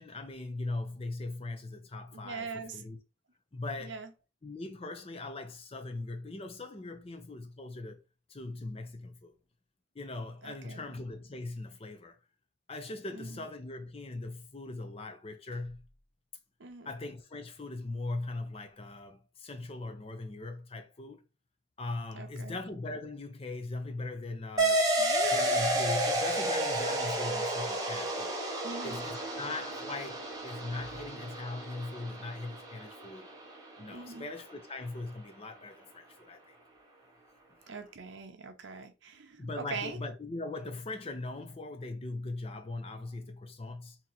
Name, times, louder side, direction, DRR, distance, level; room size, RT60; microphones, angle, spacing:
voice 1, 0.0-3.0 3.5-4.0 4.4-8.0 8.3-9.3 9.9-12.2 12.7-15.8 16.8-21.2 21.8-24.9 25.3-28.3 28.8-33.3 33.8-36.6 39.4-44.0, left 2 dB, 30° left, 0.5 m, -40 dB
voice 2, 2.1-2.8 3.8-4.1 10.4-11.0 13.1-13.4 16.6-16.9 22.1-22.6 25.0-25.7 28.1-28.2 28.6-29.0 33.9-34.3 37.7-40.0, right 4 dB, 70° right, 0.7 m, -42 dB
sound 1, 24.6-33.6, right 1 dB, 20° right, 0.7 m, -31 dB
2.9 x 2.9 x 3.8 m
head